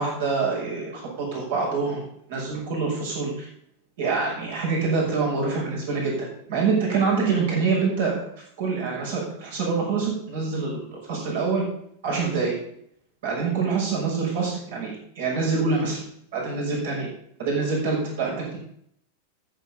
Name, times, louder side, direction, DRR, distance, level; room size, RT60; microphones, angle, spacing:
voice 1, 0.0-2.0 2.3-3.5 4.0-8.2 8.6-11.7 12.0-12.5 13.2-16.0 16.3-17.1 17.4-18.6, right 4 dB, 55° right, -3 dB, 6.0 m, -25 dB
14.0 x 8.1 x 5.6 m, 0.69 s
figure-of-eight pair, 90°, 0 cm